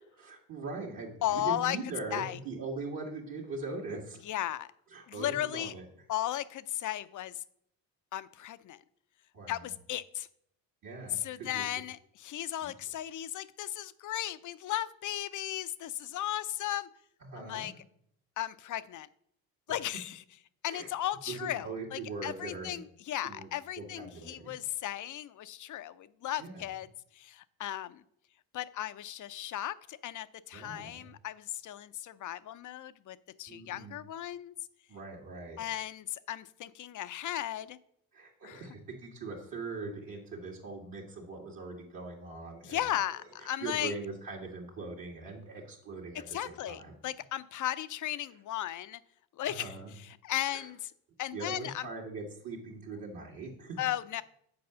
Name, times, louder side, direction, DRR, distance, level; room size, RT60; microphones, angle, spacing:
voice 1, 0.2-4.2 4.9-6.0 9.3-9.7 10.8-11.7 12.6-12.7 17.2-17.8 20.7-20.9 21.3-22.8 23.2-23.5 23.8-24.5 26.4-26.7 30.5-31.1 33.5-34.0 34.9-35.6 38.1-42.8 43.4-46.9 49.4-49.9 50.4-50.7 51.3-53.8, right 3 dB, 55° right, -2 dB, 1.9 m, -41 dB
voice 2, 1.2-1.8 2.1-2.4 4.2-4.7 5.1-5.7 6.1-7.3 8.1-8.8 9.5-10.3 11.1-16.9 17.4-17.7 18.4-19.1 19.7-20.2 20.6-26.9 27.1-28.0 28.5-34.5 35.6-37.8 38.4-38.6 42.6-43.9 46.3-49.0 49.4-49.7 50.2-50.9 51.2-51.9 53.8-54.2, left 12 dB, 50° left, 15 dB, 0.6 m, -36 dB
6.9 x 4.8 x 6.7 m, 0.70 s
supercardioid pair, 75°, 39 cm